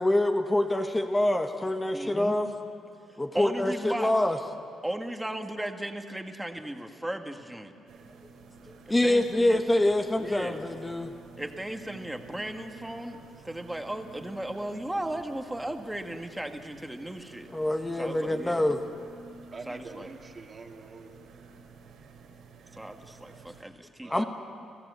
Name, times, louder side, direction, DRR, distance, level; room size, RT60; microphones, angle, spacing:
voice 1, 0.0-2.5 3.2-4.4 8.9-11.1 17.5-18.8 24.1-24.2, left 1 dB, 15° left, 4 dB, 1.4 m, -25 dB
voice 2, 1.9-2.3 3.3-4.1 4.8-7.7 9.0-9.6 10.2-10.6 11.4-13.2 13.4-17.5 18.0-18.7 19.7-20.1 22.7-24.2, right 1 dB, 5° right, 4 dB, 1.8 m, -36 dB
sound 1, 7.9-23.6, right 4 dB, 80° right, 3.0 m, -51 dB
voice 3, 19.5-21.3 24.0-24.2, right 3 dB, 35° right, 3 dB, 2.0 m, -45 dB
29.0 x 15.5 x 8.3 m, 2.4 s
cardioid pair, 90°, 0 cm